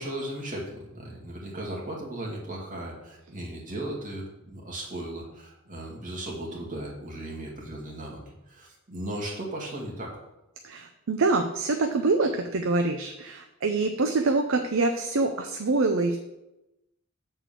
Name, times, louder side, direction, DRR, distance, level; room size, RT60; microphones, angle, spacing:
voice 1, 0.0-10.2, right 1 dB, 40° right, -3 dB, 2.2 m, -36 dB
voice 2, 10.6-16.2, right 3 dB, 65° right, 5 dB, 0.6 m, -25 dB
7.5 x 4.4 x 6.8 m, 0.93 s
head